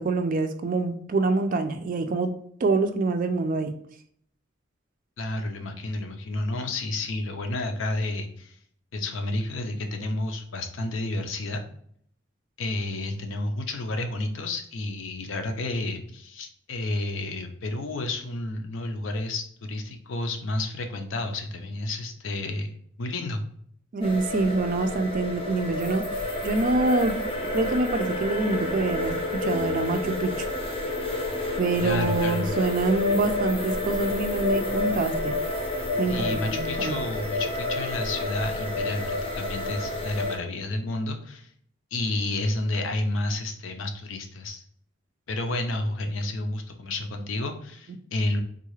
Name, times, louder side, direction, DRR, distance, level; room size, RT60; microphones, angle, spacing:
voice 1, 0.0-2.3 2.6-3.7 23.9-27.2 27.5-30.5 31.6-35.4 36.0-37.0, right 3 dB, 45° right, 7 dB, 0.4 m, -26 dB
voice 2, 5.2-8.6 8.9-11.6 12.6-22.7 23.0-23.4 31.8-32.5 36.1-41.5 41.9-44.6 45.3-48.4, left 2 dB, 75° left, 6 dB, 0.5 m, -30 dB
sound 1, 24.0-40.4, left 2 dB, 25° left, 0.6 m, -29 dB
3.7 x 2.3 x 3.1 m, 0.63 s
head